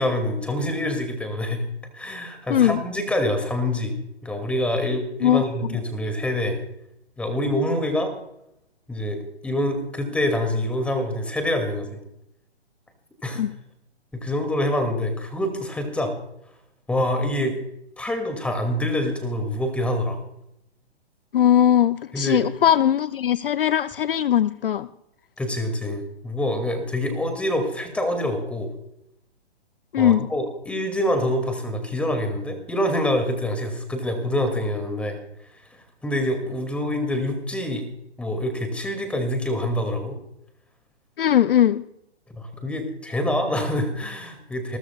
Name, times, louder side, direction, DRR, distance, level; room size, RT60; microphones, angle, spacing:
voice 1, 0.0-1.6 1.9-3.9 4.2-6.6 7.2-8.1 8.9-9.2 9.4-12.0 13.2-13.4 14.1-16.1 16.9-17.6 18.0-20.2 22.1-22.4 25.4-28.7 30.0-35.2 36.0-37.8 38.2-40.2 42.3-44.8, left 1 dB, 5° left, 6 dB, 2.3 m, -26 dB
voice 2, 2.5-2.8 5.2-5.8 13.4-13.5 21.3-24.9 29.9-30.3 41.2-41.8, left 10 dB, 55° left, 15 dB, 0.6 m, -20 dB
28.5 x 13.0 x 2.3 m, 0.78 s
figure-of-eight pair, 130°, 33 cm